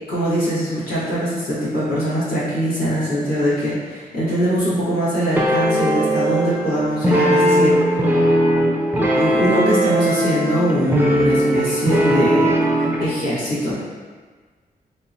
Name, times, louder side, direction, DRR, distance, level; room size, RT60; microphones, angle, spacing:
voice 1, 0.1-8.0 8.9-13.7, equal, 75° left, -11 dB, 1.5 m, -22 dB
sound 1, 5.4-13.1, right 1 dB, 10° right, 0.4 m, -19 dB
3.7 x 2.9 x 2.6 m, 1.5 s
wide cardioid pair, 135°, 16 cm